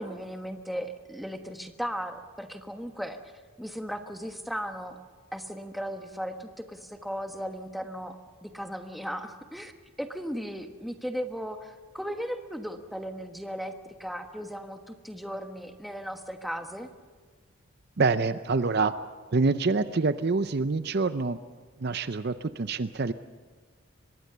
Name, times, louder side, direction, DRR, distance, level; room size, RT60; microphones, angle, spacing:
voice 1, 0.0-3.2 3.6-5.0 5.3-9.7 10.0-16.9, equal, ahead, 5 dB, 1.3 m, -36 dB
voice 2, 18.0-18.9 19.3-21.4 21.8-23.1, right 4 dB, 50° right, 12 dB, 0.6 m, -26 dB
24.5 x 21.5 x 6.8 m, 1.5 s
head